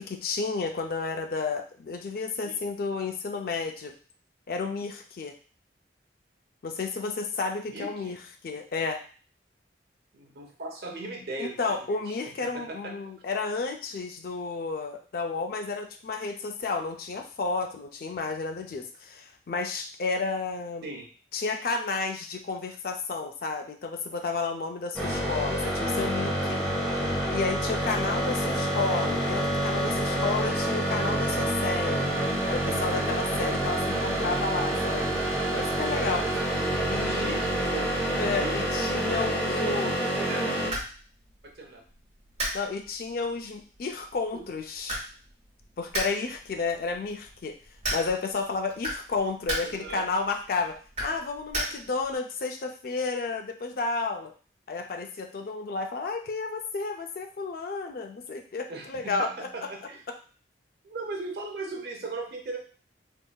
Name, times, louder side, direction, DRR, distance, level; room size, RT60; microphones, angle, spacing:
voice 1, 0.0-3.9 4.5-5.4 6.6-8.2 8.4-9.0 11.4-20.9 21.3-26.6 27.3-32.1 32.5-35.2 35.5-36.3 36.9-37.4 38.2-39.9 42.5-45.0 45.8-47.6 47.9-54.3 54.7-59.5, left 4 dB, 55° left, 5 dB, 0.4 m, -31 dB
voice 2, 7.7-8.2 10.1-12.0 12.4-12.9 20.8-21.1 37.0-37.9 38.4-38.7 39.2-40.6 41.6-41.8 44.3-44.4 49.6-50.1 58.7-60.0 60.8-62.6, right 2 dB, 60° right, 2 dB, 0.7 m, -38 dB
sound 1, 25.0-40.7, right 1 dB, 5° left, 0.7 m, -27 dB
sound 2, 40.3-52.2, right 1 dB, 35° right, 1.3 m, -38 dB
3.5 x 2.6 x 2.2 m, 0.40 s
head